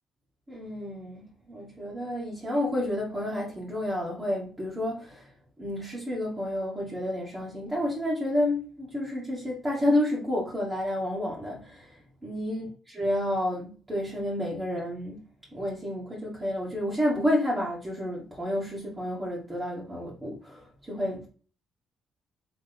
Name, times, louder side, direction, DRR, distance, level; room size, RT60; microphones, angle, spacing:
voice 1, 0.5-5.3 5.6-15.2 15.5-21.2, left 1 dB, 20° right, 1.9 m, -30 dB
4.1 x 3.5 x 3.5 m
cardioid pair, 90°, 0 cm